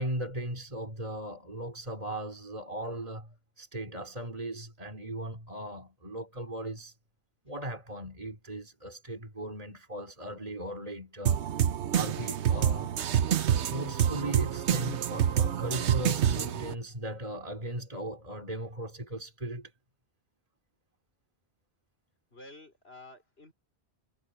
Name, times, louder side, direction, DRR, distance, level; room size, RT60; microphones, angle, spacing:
voice 1, 0.0-6.9 7.5-12.9 13.6-19.7, right 1 dB, 35° right, 3.5 m, -38 dB
sound 1, 11.3-16.7, right 9 dB, 85° right, 1.1 m, -27 dB
voice 2, 22.3-23.5, left 2 dB, 65° left, 5.4 m, -50 dB
omnidirectional pair, 1.1 m